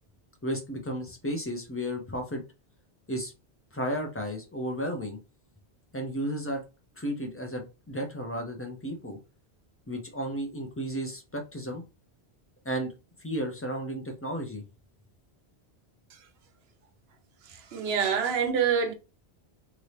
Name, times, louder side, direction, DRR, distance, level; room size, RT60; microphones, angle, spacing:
voice 1, 0.4-2.4 3.1-3.3 3.7-5.2 5.9-6.6 7.0-9.2 9.9-11.8 12.6-12.9 13.2-14.6, equal, 15° left, 0.6 m, -33 dB
voice 2, 17.7-18.9, right 7 dB, 70° right, 0.9 m, -25 dB
3.0 x 2.6 x 3.2 m
omnidirectional pair, 1.1 m